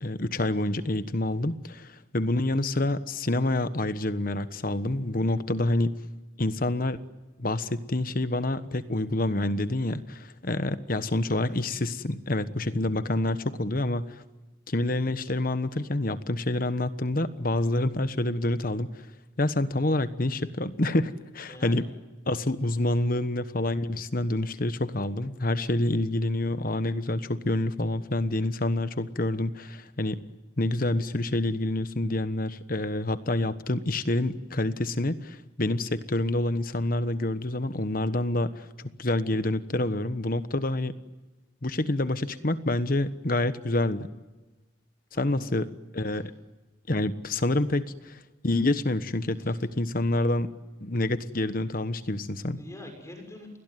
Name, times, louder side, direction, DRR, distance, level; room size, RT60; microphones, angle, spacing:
voice 1, 0.0-6.0 6.4-7.0 7.4-14.2 14.7-19.0 19.4-21.9 22.3-30.2 30.6-38.7 39.0-40.9 41.6-44.1 45.1-46.3 46.9-50.5 50.8-52.6, left 1 dB, 45° left, 12 dB, 1.3 m, -27 dB
voice 2, 21.5-21.8 22.8-23.1 45.1-45.6 46.1-46.2 49.4-49.6 52.6-53.6, left 1 dB, 15° left, 4 dB, 6.4 m, -45 dB
29.0 x 21.0 x 9.4 m, 1.2 s
head